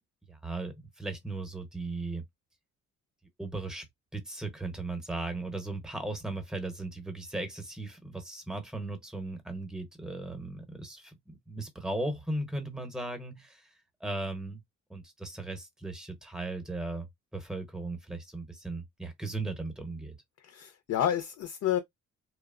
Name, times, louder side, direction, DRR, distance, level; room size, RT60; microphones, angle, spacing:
voice 1, 0.3-2.2 3.4-3.9 4.1-13.7 14.0-14.6 14.9-20.2, right 2 dB, ahead, 0.8 m, -37 dB
voice 2, 20.4-21.8, left 10 dB, 60° left, 0.5 m, -29 dB
2.9 x 2.0 x 2.3 m
cardioid pair, 90°, 30 cm